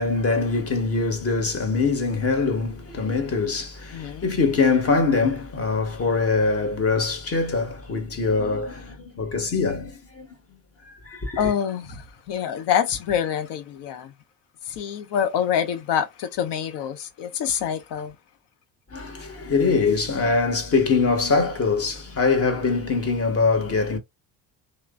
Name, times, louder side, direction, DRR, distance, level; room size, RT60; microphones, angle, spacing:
voice 1, 0.0-10.3 10.9-11.5 18.9-24.0, left 4 dB, 30° left, 1.0 m, -23 dB
voice 2, 3.9-4.3 11.4-14.1 14.7-18.1, left 8 dB, 60° left, 0.8 m, -26 dB
3.0 x 2.0 x 2.3 m
hypercardioid pair, 55°, 47 cm